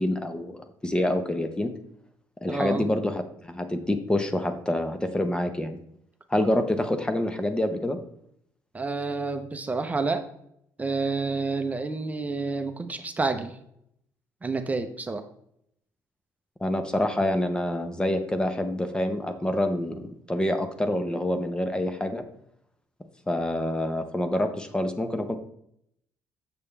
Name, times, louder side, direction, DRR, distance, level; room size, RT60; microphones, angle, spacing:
voice 1, 0.0-1.7 2.4-5.8 6.3-8.0 16.6-22.2 23.3-25.4, left 1 dB, 10° left, 8 dB, 0.8 m, -27 dB
voice 2, 2.5-2.9 8.7-10.2 10.8-13.6 14.4-15.2, right 3 dB, 20° right, 6 dB, 0.7 m, -29 dB
6.9 x 6.7 x 3.3 m, 0.72 s
cardioid pair, 90°, 7 cm